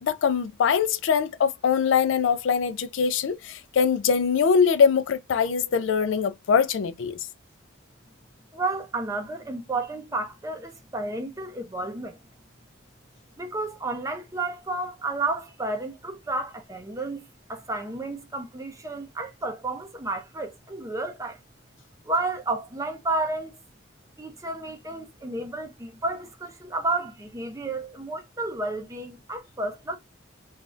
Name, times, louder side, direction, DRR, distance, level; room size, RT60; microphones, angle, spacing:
voice 1, 0.0-7.2, left 6 dB, 70° left, 0.3 m, -22 dB
voice 2, 8.5-12.2 13.4-21.4 22.0-23.5 24.2-30.0, right 2 dB, 15° right, 0.5 m, -31 dB
3.1 x 2.4 x 2.4 m
head